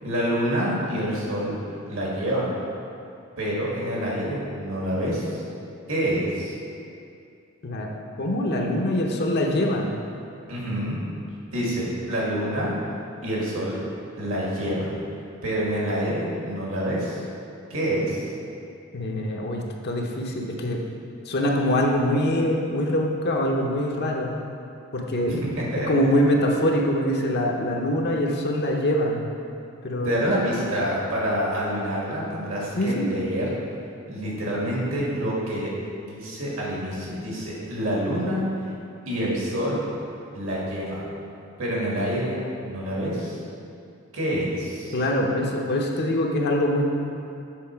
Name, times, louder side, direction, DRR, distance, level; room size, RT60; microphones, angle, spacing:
voice 1, 0.0-1.5 1.9-2.5 3.4-5.4 5.9-6.6 10.5-11.0 11.5-12.7 13.2-13.8 14.2-14.9 15.4-17.2 17.7-18.2 25.2-25.9 30.0-33.6 34.1-35.7 36.0-38.5 39.1-39.8 40.3-41.0 41.6-43.4 44.1-45.0, equal, 65° right, -5 dB, 1.9 m, -27 dB
voice 2, 8.2-10.0 18.9-20.8 21.3-24.4 24.9-25.4 25.9-29.2 29.8-30.2 32.8-33.1 44.9-46.8, left 1 dB, 50° left, 0 dB, 0.7 m, -24 dB
7.6 x 4.1 x 5.8 m, 2.5 s
head